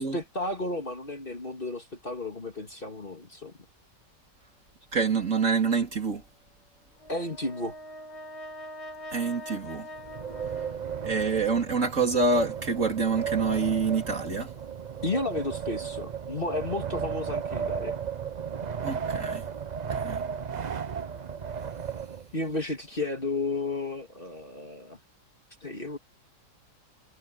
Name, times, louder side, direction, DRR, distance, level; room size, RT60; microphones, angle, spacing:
voice 1, 0.0-3.5 7.1-7.8 15.0-18.0 22.3-25.0 25.6-26.0, left 2 dB, 30° left, 2.2 m, -33 dB
voice 2, 4.9-6.2 9.1-9.9 11.0-14.5 18.8-19.5 19.9-20.2, right 4 dB, 45° right, 3.1 m, -26 dB
Brass instrument, 7.0-11.4, equal, 65° left, 5.9 m, -43 dB
Wind, 9.9-22.6, right 7 dB, 80° right, 0.3 m, -34 dB
omnidirectional pair, 1.8 m